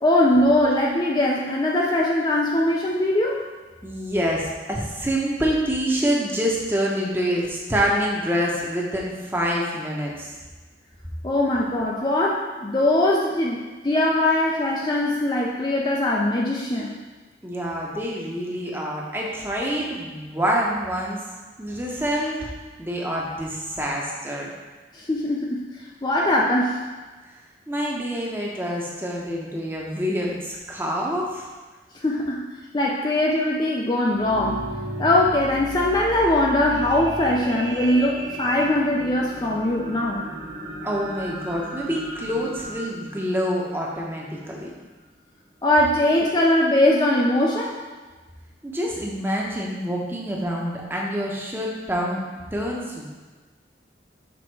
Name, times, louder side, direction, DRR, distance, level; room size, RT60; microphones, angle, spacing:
voice 1, 0.0-3.4 11.2-17.0 24.9-26.8 31.9-32.5 32.7-34.6 35.0-40.2 45.6-47.8, left 1 dB, 25° left, -2 dB, 0.4 m, -21 dB
voice 2, 3.8-10.3 17.4-21.2 21.6-22.5 22.8-24.5 27.7-31.5 40.8-44.7 48.6-52.2 52.5-53.1, equal, 10° right, -2 dB, 0.8 m, -26 dB
sound 1, 34.1-44.4 45.0-45.1, right 1 dB, 45° right, 1.3 m, -35 dB
6.1 x 3.5 x 4.6 m, 1.3 s
head